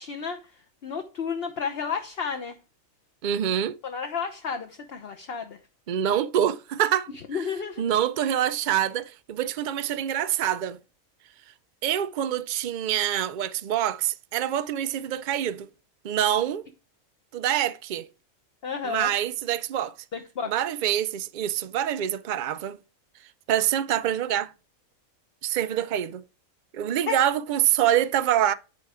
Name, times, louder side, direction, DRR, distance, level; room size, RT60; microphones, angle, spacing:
voice 1, 0.0-2.6 3.8-5.6 7.3-7.8 18.6-19.1 20.1-20.5 27.1-27.2, left 6 dB, 50° left, 1.1 m, -32 dB
voice 2, 3.2-3.8 5.9-7.1 7.8-10.8 11.8-15.7 16.0-16.7 17.3-18.1 18.8-19.9 20.5-22.8 23.5-24.5 25.4-26.2 26.7-28.5, right 10 dB, 85° right, 0.4 m, -25 dB
10.5 x 4.6 x 4.9 m
omnidirectional pair, 1.4 m